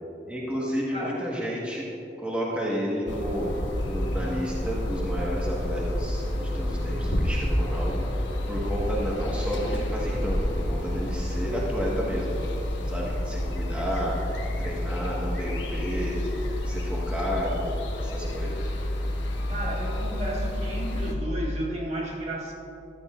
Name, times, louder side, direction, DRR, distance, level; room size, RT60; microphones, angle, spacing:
voice 1, 0.3-1.8 2.2-8.0 8.5-12.4 12.9-14.1 14.6-16.2 16.6-17.7 18.0-18.7, equal, 5° right, -5 dB, 1.5 m, -31 dB
sound 1, 3.1-21.2, left 1 dB, 90° left, 1.3 m, -29 dB
voice 2, 19.5-22.5, right 1 dB, 35° right, -3 dB, 1.7 m, -33 dB
15.5 x 12.5 x 2.5 m, 3.0 s
head